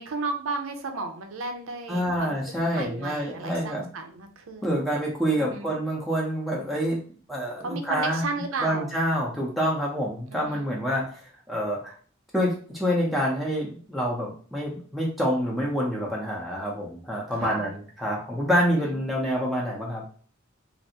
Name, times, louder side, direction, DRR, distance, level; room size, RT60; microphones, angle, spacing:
voice 1, 0.0-2.4 2.7-4.9 5.3-5.8 7.6-9.0 10.3-10.7 17.3-17.7 18.8-19.0, right 3 dB, 75° right, 5 dB, 0.6 m, -34 dB
voice 2, 1.9-3.9 4.6-7.0 7.3-8.2 8.6-11.0 11.5-11.9 12.3-20.0, equal, ahead, -4 dB, 0.6 m, -27 dB
3.3 x 2.5 x 2.8 m, 0.44 s
head